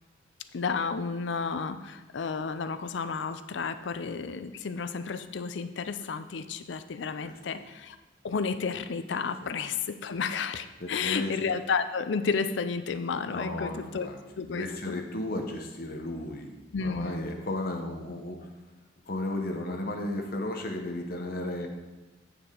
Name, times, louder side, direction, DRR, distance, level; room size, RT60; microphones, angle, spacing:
voice 1, 0.5-8.0 8.2-14.1 14.4-15.0 16.7-17.3, left 5 dB, 70° left, 11 dB, 0.5 m, -32 dB
voice 2, 7.2-7.7 9.4-9.5 10.8-11.3 13.3-14.2 14.5-16.5 16.8-18.5 19.1-21.7, left 1 dB, 55° left, 3 dB, 0.9 m, -34 dB
8.2 x 6.9 x 3.8 m, 1.2 s
head